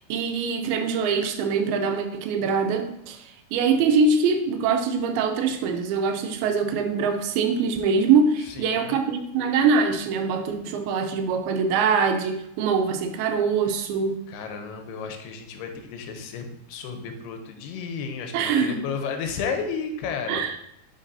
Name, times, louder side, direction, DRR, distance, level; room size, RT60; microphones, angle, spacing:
voice 1, 0.0-14.2 18.3-18.8 20.3-20.6, right 5 dB, 80° right, 6 dB, 2.4 m, -23 dB
voice 2, 8.5-9.0 14.3-20.4, left 5 dB, 90° left, 5 dB, 2.8 m, -33 dB
11.0 x 4.6 x 2.7 m, 0.80 s
omnidirectional pair, 4.5 m